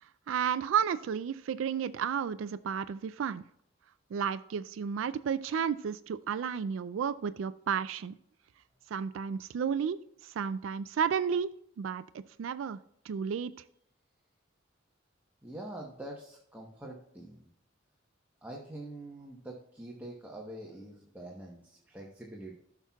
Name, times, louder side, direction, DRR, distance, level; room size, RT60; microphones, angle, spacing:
voice 1, 0.0-3.4 4.1-8.1 8.9-11.5 11.8-12.8 13.0-13.5, right 7 dB, 70° right, 14 dB, 0.3 m, -32 dB
voice 2, 15.4-17.5 18.4-22.6, right 1 dB, 10° right, -2 dB, 1.0 m, -45 dB
13.5 x 5.9 x 2.3 m, 0.70 s
head